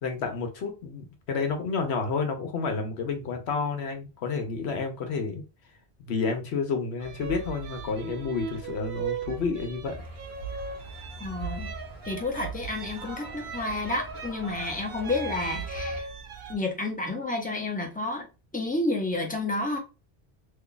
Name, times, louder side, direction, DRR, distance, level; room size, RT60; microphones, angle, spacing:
voice 1, 0.0-5.4 6.0-10.0, left 4 dB, 90° left, 1.0 m, -30 dB
sound 1, 7.0-16.6, right 6 dB, 65° right, 0.8 m, -38 dB
sound 2, 9.9-16.0, equal, 20° right, 0.9 m, -44 dB
voice 2, 11.2-11.7 12.0-16.0 16.5-18.3 18.5-19.8, left 2 dB, 10° left, 0.7 m, -30 dB
2.9 x 2.3 x 3.9 m
omnidirectional pair, 1.1 m